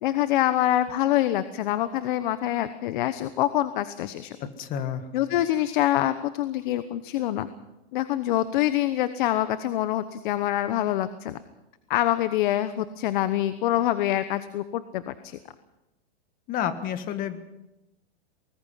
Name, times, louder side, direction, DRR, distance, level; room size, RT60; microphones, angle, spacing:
voice 1, 0.0-4.4 5.1-7.5 7.9-11.4 11.9-15.4, left 13 dB, 50° left, 12 dB, 1.1 m, -25 dB
voice 2, 4.4-5.1 16.5-17.4, left 9 dB, 25° left, 10 dB, 1.6 m, -30 dB
23.5 x 20.5 x 5.7 m, 0.94 s
supercardioid pair, 155°, 32 cm